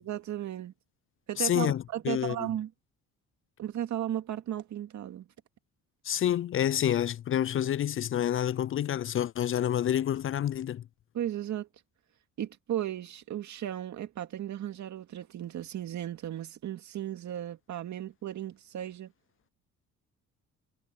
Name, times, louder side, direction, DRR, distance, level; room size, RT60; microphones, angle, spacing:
voice 1, 0.0-0.7 1.3-2.7 3.6-5.3 11.1-11.7 12.4-19.1, right 11 dB, 70° right, 2.3 m, -35 dB
voice 2, 1.4-2.5 6.0-10.8, left 10 dB, 45° left, 0.4 m, -28 dB
cardioid pair, 90°, 30 cm